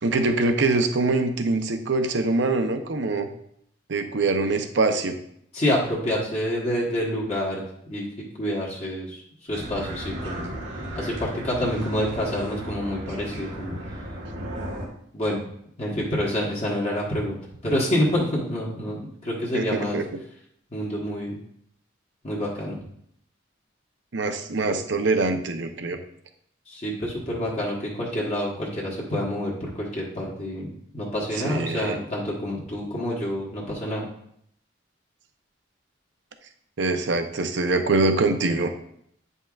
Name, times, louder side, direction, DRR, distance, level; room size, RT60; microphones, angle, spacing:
voice 1, 0.0-3.3 3.9-5.2 19.5-19.7 19.9-20.0 24.1-26.0 31.4-32.0 36.8-38.7, right 3 dB, 65° right, 7 dB, 0.7 m, -23 dB
voice 2, 5.5-7.6 7.9-8.0 8.4-9.2 9.5-10.5 10.9-13.8 15.1-15.4 15.8-17.4 17.6-20.0 20.7-21.3 22.2-22.8 26.7-30.7 30.9-34.1, equal, 35° left, -5 dB, 1.2 m, -27 dB
sound 1, 9.5-14.9, equal, 90° right, 1.5 m, -35 dB
8.8 x 5.4 x 2.4 m, 0.70 s
head